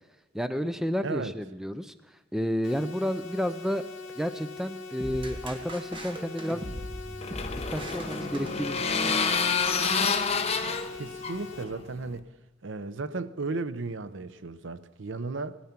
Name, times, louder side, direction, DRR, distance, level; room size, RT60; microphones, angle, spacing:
voice 1, 0.3-1.9 2.3-3.8 4.2-6.7 7.7-9.2, equal, ahead, 0.6 m, -31 dB
voice 2, 1.0-1.3 10.6-12.3 12.6-15.6, right 3 dB, 70° right, 0.7 m, -35 dB
sound 1, 2.6-11.6, left 4 dB, 80° left, 2.0 m, -42 dB
sound 2, 5.0-9.2, equal, 25° right, 1.7 m, -40 dB
sound 3, 6.7-12.2, left 5 dB, 35° left, 1.0 m, -29 dB
17.5 x 13.0 x 5.9 m
head